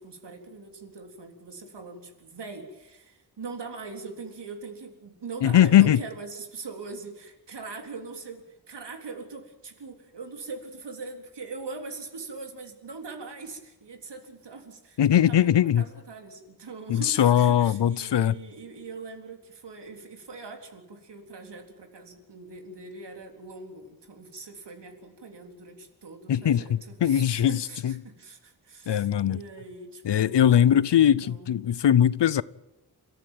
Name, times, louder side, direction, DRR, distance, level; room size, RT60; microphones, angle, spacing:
voice 1, 0.0-30.8 31.0-31.7, right 4 dB, 75° right, 3.9 m, -42 dB
voice 2, 5.4-6.0 15.0-15.8 16.9-18.4 26.3-27.9 28.9-29.4 30.0-32.4, left 10 dB, 80° left, 0.7 m, -21 dB
29.5 x 14.0 x 9.2 m
wide cardioid pair, 110°, 41 cm